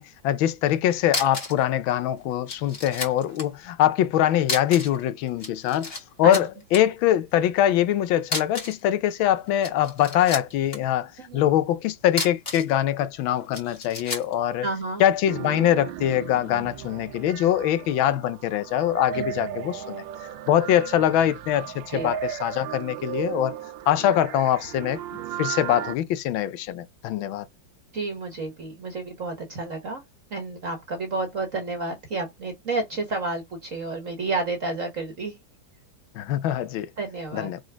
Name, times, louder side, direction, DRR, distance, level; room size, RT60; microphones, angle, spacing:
voice 1, 0.0-5.9 6.2-14.7 15.0-20.0 20.5-23.5 23.9-25.0 25.4-27.4 36.2-36.9 37.3-37.6, left 11 dB, 80° left, 1.5 m, -23 dB
sound 1, 0.7-0.8 1.1-1.6 1.9-2.0 2.5-3.5 4.4-5.0 5.3-6.0 6.3-6.8 8.2-8.8 9.5-10.8 12.0-12.7 13.5-14.3, left 3 dB, 30° left, 2.0 m, -31 dB
voice 2, 14.6-15.0 19.1-19.3 21.9-22.1 27.9-30.0 30.3-35.4 37.0-37.5, right 3 dB, 45° right, 1.6 m, -30 dB
sound 2, 15.3-25.9, right 11 dB, 75° right, 1.3 m, -36 dB
4.8 x 3.9 x 5.0 m
omnidirectional pair, 2.2 m